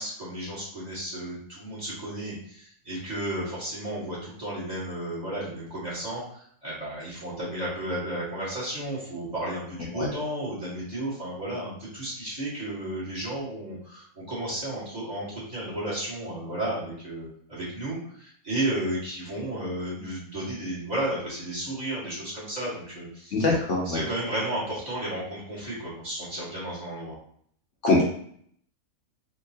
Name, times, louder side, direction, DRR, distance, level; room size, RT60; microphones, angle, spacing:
voice 1, 0.0-23.3 23.8-27.2, right 1 dB, 30° right, -8 dB, 1.7 m, -33 dB
voice 2, 23.3-24.0 27.8-28.0, left 2 dB, 60° left, -3 dB, 1.0 m, -22 dB
3.7 x 2.8 x 2.8 m, 0.62 s
omnidirectional pair, 1.5 m